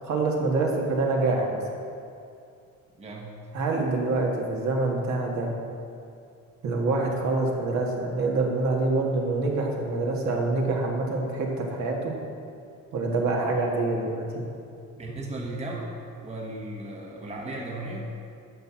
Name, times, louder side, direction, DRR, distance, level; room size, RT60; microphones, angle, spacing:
voice 1, 0.0-1.7 3.5-5.5 6.6-12.1 12.9-14.4, right 3 dB, 60° right, -1 dB, 1.8 m, -26 dB
voice 2, 3.0-3.4 15.0-18.0, right 2 dB, 20° right, -1 dB, 1.2 m, -36 dB
12.0 x 4.4 x 7.4 m, 2.5 s
cardioid pair, 120°, 32 cm